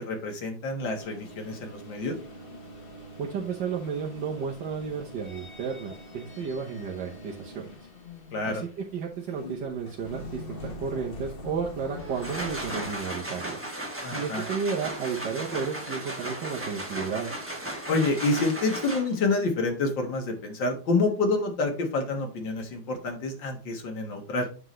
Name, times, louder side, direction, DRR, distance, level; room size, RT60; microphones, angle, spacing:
voice 1, 0.0-2.2 8.3-8.6 14.0-14.4 17.9-24.5, left 3 dB, 70° left, 3 dB, 2.1 m, -28 dB
sound 1, 0.8-13.0, left 2 dB, 35° left, 1.3 m, -43 dB
voice 2, 3.2-7.7 8.4-13.6 14.1-17.3, right 6 dB, 65° right, -2 dB, 1.6 m, -33 dB
sound 2, 12.0-19.3, right 1 dB, 10° right, 1.2 m, -36 dB
8.0 x 5.8 x 3.1 m, 0.35 s
omnidirectional pair, 2.1 m